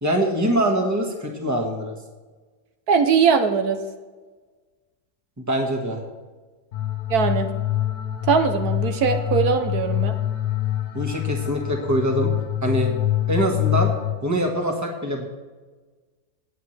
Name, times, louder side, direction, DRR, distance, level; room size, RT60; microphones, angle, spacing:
voice 1, 0.0-1.9 5.5-6.0 10.9-12.3 12.6-12.9 13.3-13.9 14.2-15.3, right 1 dB, 10° right, 2 dB, 1.4 m, -23 dB
voice 2, 2.9-3.8 7.1-7.5 8.3-10.1, right 6 dB, 75° right, 7 dB, 1.3 m, -20 dB
sound 1, 6.7-14.1, left 13 dB, 90° left, 1.7 m, -25 dB
18.5 x 8.2 x 3.3 m, 1.3 s
omnidirectional pair, 1.7 m